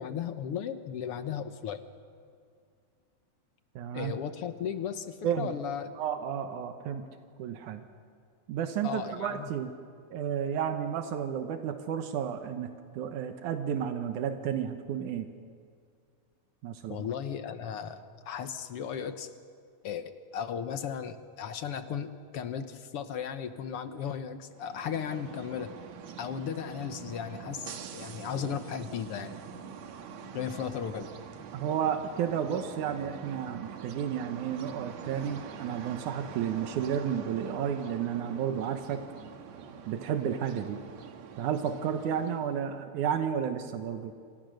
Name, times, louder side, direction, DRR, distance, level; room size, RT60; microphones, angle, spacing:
voice 1, 0.0-1.8 3.9-5.9 8.8-9.5 16.9-19.3 19.8-25.7 26.2-29.4 30.3-31.1, left 8 dB, 60° left, 9 dB, 1.7 m, -36 dB
voice 2, 3.8-4.1 5.2-5.5 6.0-7.1 7.4-7.8 8.5-9.7 10.1-12.7 12.9-15.3 16.6-17.1 31.5-39.0 39.9-40.8 41.4-44.1, right 8 dB, 85° right, 7 dB, 2.6 m, -32 dB
sound 1, 24.5-42.6, right 7 dB, 65° right, 2.6 m, -45 dB
27.5 x 26.5 x 6.5 m, 2.2 s
omnidirectional pair, 3.4 m